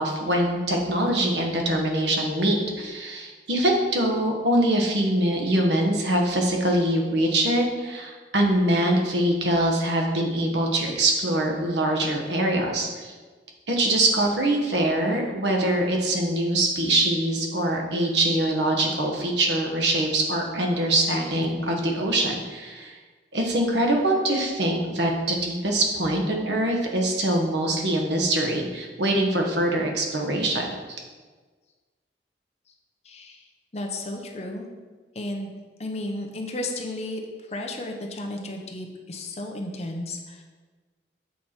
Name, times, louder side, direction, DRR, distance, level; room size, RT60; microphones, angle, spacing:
voice 1, 0.0-13.1 13.7-23.0 23.3-30.7, right 1 dB, 75° right, 1 dB, 1.1 m, -23 dB
voice 2, 33.0-33.4 33.7-34.7 35.1-35.5 35.8-37.2 37.5-40.4, left 1 dB, 35° left, 2 dB, 0.7 m, -33 dB
7.2 x 4.5 x 4.3 m, 1.4 s
head